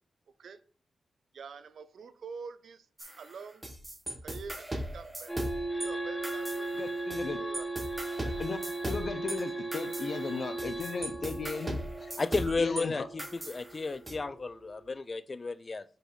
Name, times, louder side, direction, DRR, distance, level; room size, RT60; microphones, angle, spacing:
voice 1, 1.3-2.9 3.2-3.7 4.2-5.3 5.8-6.7 7.3-7.7, right 5 dB, 75° right, 0.6 m, -46 dB
sound 1, 3.0-5.9 6.2-7.3 7.5-12.8 13.2-14.1, right 1 dB, 15° right, 1.7 m, -38 dB
sound 2, 5.3-14.9, right 2 dB, 5° left, 1.3 m, -38 dB
voice 2, 6.7-7.4 8.4-8.6 8.9-11.8 12.6-13.1, left 4 dB, 55° left, 0.8 m, -36 dB
voice 3, 12.2-15.8, left 3 dB, 35° left, 0.3 m, -33 dB
6.0 x 5.5 x 3.9 m
wide cardioid pair, 130°, 0 cm